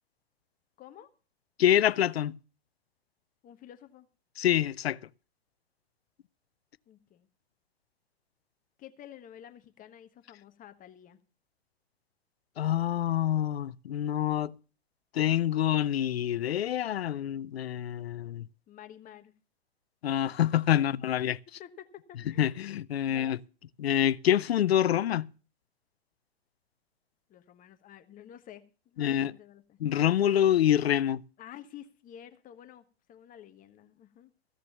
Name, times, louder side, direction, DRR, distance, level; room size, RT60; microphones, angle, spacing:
voice 1, 0.8-1.1 3.4-4.1 6.9-7.3 8.8-11.2 18.7-19.3 21.0-21.1 21.6-22.6 23.0-23.4 27.3-29.8 31.4-34.3, left 10 dB, 25° left, 1.3 m, -50 dB
voice 2, 1.6-2.4 4.4-5.0 12.6-14.5 15.1-18.5 20.0-21.4 22.4-23.4 23.8-25.3 29.0-29.3 29.8-31.2, left 11 dB, 80° left, 0.5 m, -26 dB
15.0 x 6.7 x 6.9 m
hypercardioid pair, 110°, 30 cm